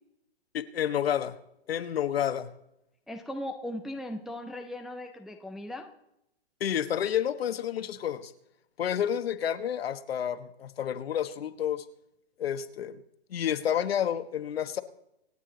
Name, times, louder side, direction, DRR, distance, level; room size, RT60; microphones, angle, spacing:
voice 1, 0.5-1.3 1.7-2.5 6.6-8.3 8.8-11.8 12.4-13.0 13.3-14.8, left 9 dB, 70° left, 11 dB, 1.2 m, -30 dB
voice 2, 3.1-5.9, left 1 dB, ahead, 3 dB, 0.4 m, -38 dB
26.0 x 8.9 x 3.8 m, 0.83 s
hypercardioid pair, 140°, 31 cm